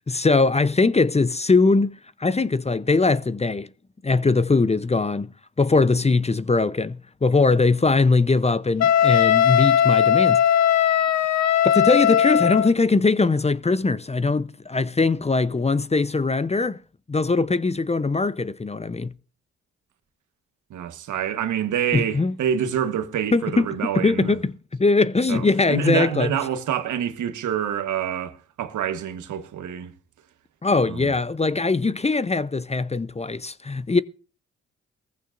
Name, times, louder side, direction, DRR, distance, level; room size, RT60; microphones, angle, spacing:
voice 1, 0.1-3.7 4.0-5.3 5.6-10.4 11.6-16.8 17.1-19.1 21.9-22.3 23.3-23.7 23.9-26.3 30.6-34.0, left 3 dB, 20° left, 0.7 m, -21 dB
Wind instrument woodwind instrument, 8.8-12.7, left 9 dB, 65° left, 1.0 m, -18 dB
voice 2, 20.7-24.3 25.3-29.9 30.8-31.1, right 9 dB, 75° right, 1.3 m, -27 dB
19.0 x 15.0 x 2.6 m
supercardioid pair, 45°, 30 cm